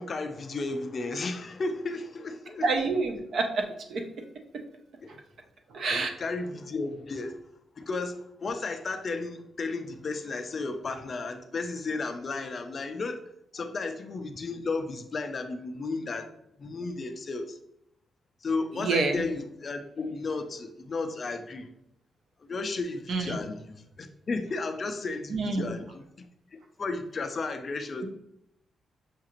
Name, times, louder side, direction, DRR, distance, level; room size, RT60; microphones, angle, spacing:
voice 1, 0.0-2.7 5.0-5.1 5.8-7.4 7.8-13.2 13.5-16.3 16.6-17.6 18.4-21.7 22.5-26.1 26.8-28.1, left 3 dB, 35° left, 0.3 m, -33 dB
voice 2, 2.6-4.1 5.1-5.2 5.7-6.1 18.7-19.2 23.1-23.5 25.3-25.7, right 3 dB, 50° right, 0.5 m, -28 dB
5.7 x 2.4 x 2.9 m
wide cardioid pair, 175°, 0 cm